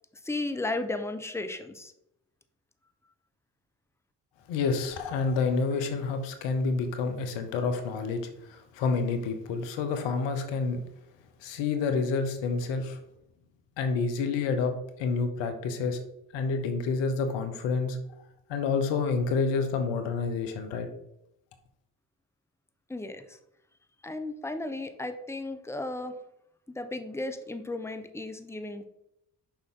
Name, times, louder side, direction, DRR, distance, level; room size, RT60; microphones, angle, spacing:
voice 1, 0.2-1.9 22.9-23.4 24.0-26.2 26.7-28.8, left 2 dB, 5° left, 8 dB, 0.9 m, -34 dB
voice 2, 4.5-10.8 11.4-13.0 13.8-16.0 16.3-18.0 18.5-20.9, left 4 dB, 85° left, 7 dB, 1.0 m, -28 dB
6.9 x 5.3 x 3.7 m, 0.80 s
hypercardioid pair, 45°, 42 cm